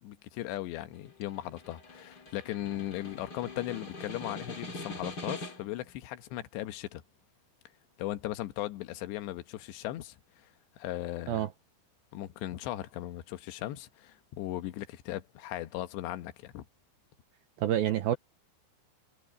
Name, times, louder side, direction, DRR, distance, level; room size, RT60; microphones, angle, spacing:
voice 1, 0.0-7.0 8.0-10.5 10.8-11.5 12.1-16.7, left 15 dB, 75° left, 3.2 m, -38 dB
Snare drum, 0.9-5.8, left 2 dB, 25° left, 2.5 m, -43 dB
voice 2, 17.6-18.2, right 12 dB, 80° right, 2.2 m, -27 dB
omnidirectional pair, 5.2 m